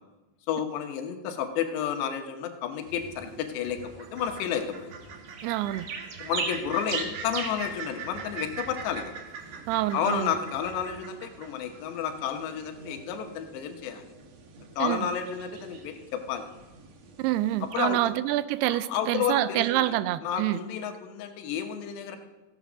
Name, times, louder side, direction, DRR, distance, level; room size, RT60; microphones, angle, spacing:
voice 1, 0.5-4.9 6.2-9.1 9.9-14.1 14.8-16.5 17.7-18.1 18.7-19.9 20.2-22.2, left 8 dB, 85° left, 6 dB, 3.2 m, -31 dB
sound 1, 2.8-18.1, right 5 dB, 65° right, 1.6 m, -41 dB
sound 2, 2.9-10.9, right 4 dB, 30° right, 4.4 m, -51 dB
voice 2, 5.4-5.9 9.7-10.4 14.8-15.1 17.2-20.6, right 15 dB, 85° right, 14 dB, 2.5 m, -27 dB
15.0 x 8.1 x 6.1 m, 1.1 s
omnidirectional pair, 4.8 m